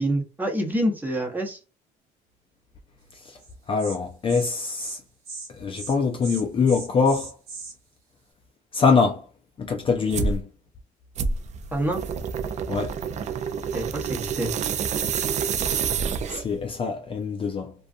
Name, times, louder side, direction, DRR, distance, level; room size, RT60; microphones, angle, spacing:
voice 1, 0.0-1.6 11.7-12.0 13.7-14.5, right 1 dB, 10° right, 0.8 m, -26 dB
Insect, 3.4-3.5 3.8-4.0 4.3-4.5 4.8-5.0 5.2-5.5 5.7-6.0 6.2-7.7, right 4 dB, 70° right, 1.1 m, -38 dB
voice 2, 3.7-5.0 5.6-7.4 8.7-9.2 9.6-10.5 12.7-12.9 16.3-17.7, left 5 dB, 30° left, 0.4 m, -24 dB
sound 1, 10.1-10.4 11.2-16.6, right 6 dB, 45° right, 0.4 m, -28 dB
2.4 x 2.3 x 2.5 m
cardioid pair, 110°, 17 cm